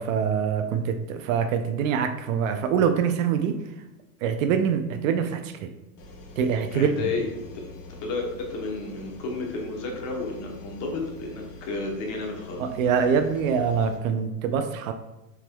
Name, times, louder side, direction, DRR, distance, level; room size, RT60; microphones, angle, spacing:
voice 1, 0.0-3.6 4.2-5.7 6.4-6.9 12.6-14.9, right 7 dB, 60° right, 8 dB, 0.5 m, -24 dB
sound 1, 6.0-14.0, left 3 dB, 85° left, 1.2 m, -44 dB
voice 2, 6.7-7.6 8.0-12.6, left 3 dB, 35° left, 0 dB, 1.0 m, -32 dB
5.9 x 3.7 x 2.2 m, 0.98 s
supercardioid pair, 155°, 46 cm